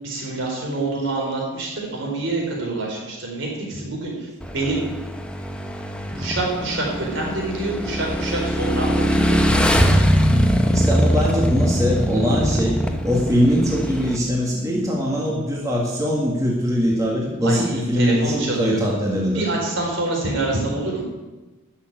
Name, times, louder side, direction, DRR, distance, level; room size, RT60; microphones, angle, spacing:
voice 1, 0.0-4.8 6.2-9.4 17.4-18.8 19.3-21.0, right 2 dB, 60° right, -1 dB, 4.6 m, -26 dB
Motorcycle / Engine, 4.4-14.2, equal, 5° left, 1.0 m, -21 dB
voice 2, 10.7-12.8 13.0-19.5, equal, 15° right, -3 dB, 1.9 m, -21 dB
13.0 x 6.8 x 9.1 m, 1.2 s
head